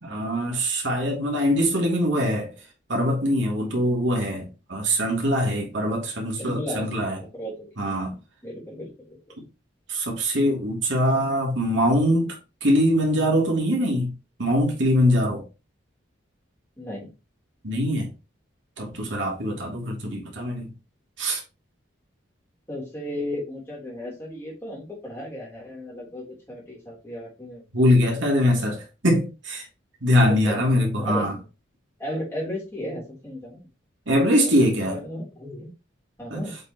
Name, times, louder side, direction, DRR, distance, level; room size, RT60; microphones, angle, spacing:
voice 1, 0.0-2.5 2.9-7.2 7.8-8.2 9.4-9.5 9.9-14.1 14.4-15.4 17.6-18.1 18.8-20.7 21.2-21.4 27.7-29.7 30.0-31.4 34.1-35.0 36.3-36.4, equal, 70° right, 2.7 m, -23 dB
voice 2, 6.4-6.9 7.2-7.8 8.4-9.2 16.8-17.1 22.7-27.6 28.1-28.3 30.2-30.6 31.0-31.3 32.0-33.6 34.4-35.7 36.2-36.5, left 1 dB, 15° left, 3.7 m, -35 dB
7.9 x 5.4 x 3.1 m
head